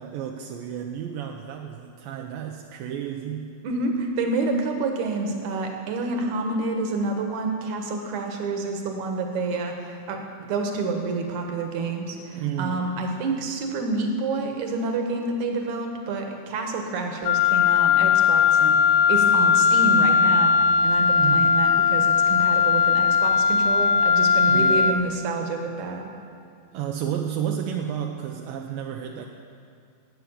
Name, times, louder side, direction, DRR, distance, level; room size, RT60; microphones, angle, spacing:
voice 1, 0.0-3.5 12.3-13.0 21.2-21.7 24.5-25.1 26.7-29.3, right 9 dB, 80° right, 2 dB, 2.2 m, -32 dB
voice 2, 3.6-10.2 10.5-18.8 19.1-20.5 20.8-26.1, right 3 dB, 60° right, 3 dB, 2.4 m, -28 dB
Wind instrument woodwind instrument, 17.3-25.0, left 6 dB, 85° left, 1.9 m, -19 dB
16.0 x 9.2 x 7.1 m, 2.4 s
omnidirectional pair, 4.5 m